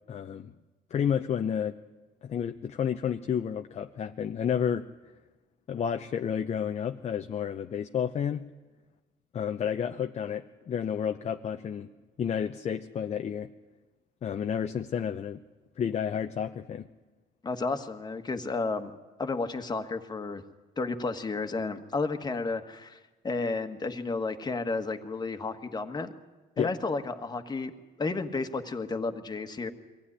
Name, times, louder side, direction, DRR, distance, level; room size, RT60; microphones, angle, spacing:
voice 1, 0.1-0.5 0.9-1.8 2.2-4.8 5.7-8.5 9.3-11.9 12.2-13.5 14.2-15.4 15.8-16.9 26.6-26.7, left 8 dB, 40° left, 6 dB, 0.7 m, -31 dB
voice 2, 17.4-18.9 19.2-20.4 20.8-23.0 23.2-26.1 26.6-27.7 28.0-29.7, left 3 dB, 25° left, 7 dB, 1.6 m, -32 dB
23.0 x 15.5 x 10.0 m, 1.2 s
cardioid pair, 110°, 17 cm